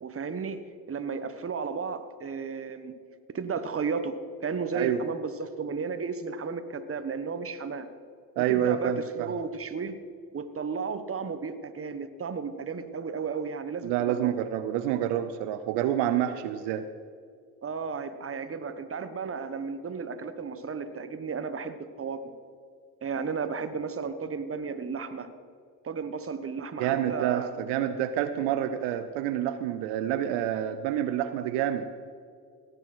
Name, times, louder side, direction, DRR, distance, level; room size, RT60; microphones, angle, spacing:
voice 1, 0.0-3.0 3.3-7.9 8.4-10.0 10.3-14.4 17.6-22.3 23.0-25.3 25.8-27.5, right 5 dB, 30° right, 10 dB, 1.2 m, -34 dB
voice 2, 8.4-9.3 13.8-16.9 26.8-31.9, right 11 dB, 75° right, 10 dB, 0.7 m, -28 dB
17.0 x 7.0 x 6.1 m, 2.2 s
hypercardioid pair, 60°, 44 cm